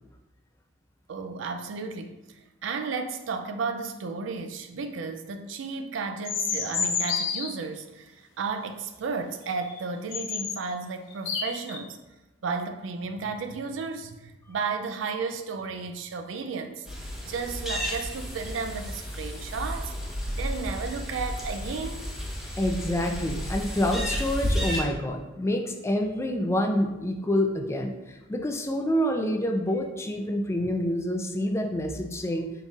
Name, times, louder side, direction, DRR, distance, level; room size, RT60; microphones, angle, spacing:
voice 1, 1.1-2.2 2.6-12.0 12.4-16.9 17.2-19.9 20.3-22.0, right 4 dB, 80° right, 8 dB, 0.4 m, -33 dB
sound 1, 6.2-7.5 9.7-9.8 10.1-10.6 11.1-11.8, left 6 dB, 85° left, 0.7 m, -29 dB
sound 2, 16.9-24.8, equal, 5° right, 0.8 m, -32 dB
voice 2, 22.6-32.5, left 1 dB, 15° left, 3 dB, 0.4 m, -27 dB
5.3 x 3.9 x 2.4 m, 1.1 s
head